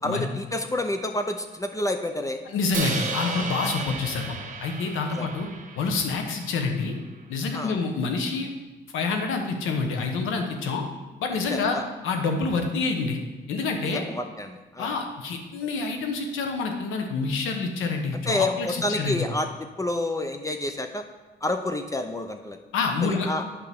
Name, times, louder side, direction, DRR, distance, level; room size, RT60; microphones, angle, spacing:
voice 1, 0.0-2.4 5.2-5.3 7.5-7.8 11.5-11.9 13.9-14.9 18.1-19.5 19.8-21.0 21.4-22.6 23.0-23.4, left 1 dB, 15° left, 6 dB, 0.5 m, -29 dB
voice 2, 2.5-5.5 5.8-7.0 7.3-8.5 8.9-10.9 11.2-11.8 12.0-13.2 13.5-14.0 14.8-19.3 22.7-23.3, left 4 dB, 85° left, 4 dB, 1.0 m, -27 dB
Crash cymbal, 2.7-6.9, right 4 dB, 40° right, 0.9 m, -34 dB
8.6 x 5.6 x 3.6 m, 1.2 s
cardioid pair, 90°, 20 cm